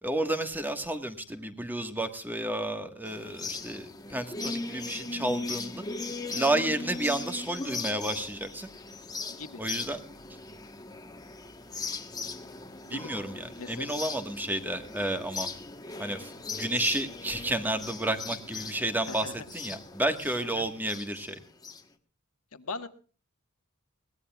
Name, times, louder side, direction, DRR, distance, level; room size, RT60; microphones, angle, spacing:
voice 1, 0.0-5.8 6.3-8.7 9.6-10.0 12.9-15.5 16.0-21.4, right 1 dB, 10° right, 7 dB, 1.5 m, -31 dB
sound 1, 3.0-21.8, left 3 dB, 20° left, 1.2 m, -39 dB
voice 2, 9.3-9.6 12.8-13.1 13.6-14.0 19.1-19.5 20.4-20.7 22.5-22.9, left 3 dB, 85° left, 8 dB, 1.5 m, -40 dB
22.5 x 18.0 x 2.4 m, 0.38 s
head